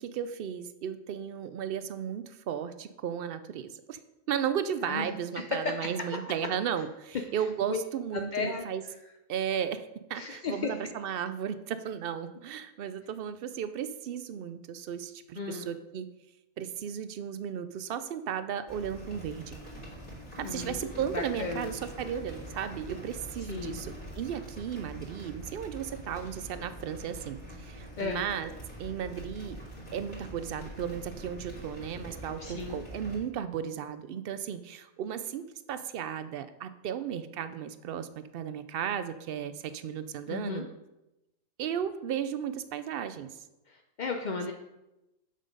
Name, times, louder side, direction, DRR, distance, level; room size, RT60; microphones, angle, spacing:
voice 1, 0.0-4.0 4.3-8.8 9.3-16.1 16.6-19.6 20.4-28.5 28.8-29.6 29.9-40.7 41.6-43.4, right 8 dB, 80° right, 12 dB, 0.5 m, -35 dB
voice 2, 5.3-5.9 7.4-7.8 8.1-8.6 10.1-10.9 15.4-15.7 20.4-20.9 21.1-21.7 23.4-23.8 28.0-28.3 32.4-32.8 40.3-40.7 43.7-44.5, left 4 dB, 55° left, 3 dB, 0.5 m, -35 dB
sound 1, 18.7-33.2, right 1 dB, 25° left, 2.8 m, -44 dB
7.5 x 6.7 x 5.2 m, 0.96 s
omnidirectional pair, 1.5 m